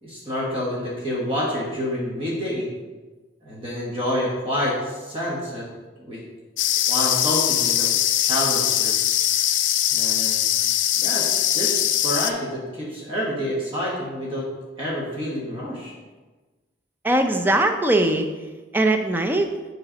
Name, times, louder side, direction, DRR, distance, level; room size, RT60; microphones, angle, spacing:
voice 1, 0.0-2.7 3.4-5.7 6.0-6.2 6.9-7.9 8.2-8.9 9.9-10.5 11.0-11.3 11.5-14.5 14.8-15.9, equal, 30° right, -5 dB, 1.3 m, -28 dB
sound 1, 6.6-12.3, left 11 dB, 80° left, 0.4 m, -21 dB
voice 2, 17.0-18.3 18.7-19.6, right 1 dB, 10° right, 5 dB, 0.4 m, -20 dB
7.6 x 3.2 x 5.0 m, 1.3 s
head